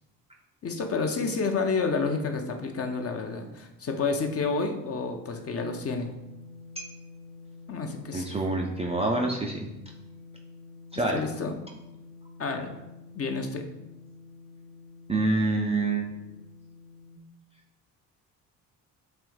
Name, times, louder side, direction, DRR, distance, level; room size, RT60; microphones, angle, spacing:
voice 1, 0.6-6.1 7.7-8.3 11.1-11.5 12.4-12.7 13.1-13.6, left 4 dB, 30° left, 4 dB, 0.7 m, -29 dB
sound 1, 5.6-17.2, left 3 dB, 70° right, 0.6 m, -48 dB
voice 2, 8.1-9.7 10.9-11.2 15.1-16.1, right 2 dB, 15° right, -1 dB, 0.5 m, -26 dB
3.4 x 3.3 x 4.6 m, 0.95 s
figure-of-eight pair, 50°, 47 cm